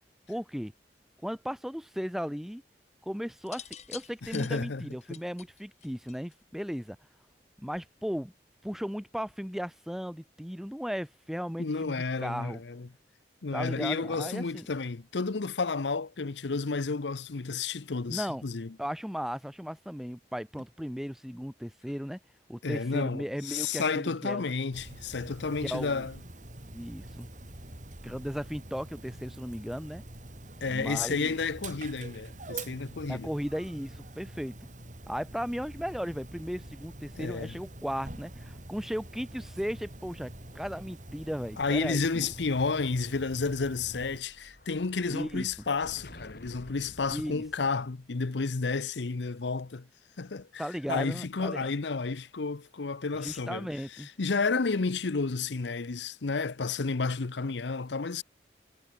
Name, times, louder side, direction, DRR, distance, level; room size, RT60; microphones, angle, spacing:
voice 1, 0.3-0.7 1.2-2.6 3.1-7.0 7.6-8.3 8.6-12.6 13.5-14.7 18.1-18.4 18.8-22.2 22.5-24.4 25.6-26.1 26.7-27.3 28.0-30.0 30.7-31.3 33.1-34.5 35.1-42.3 45.1-45.5 47.1-47.4 50.6-51.7 53.2-54.1, equal, ahead, 1.1 m, -36 dB
sound 1, 3.4-6.5 7.6-8.0, left 9 dB, 40° left, 1.8 m, -46 dB
voice 2, 4.3-4.8 5.1-5.2 11.6-12.9 13.4-18.7 22.6-26.1 30.6-33.3 37.1-37.6 41.6-49.9 50.2-53.7 54.0-58.2, left 4 dB, 85° left, 0.8 m, -31 dB
Dog, 24.7-44.2, right 2 dB, 45° right, 4.6 m, -45 dB
Explosion, 43.5-48.0, left 1 dB, 55° left, 6.3 m, -52 dB
head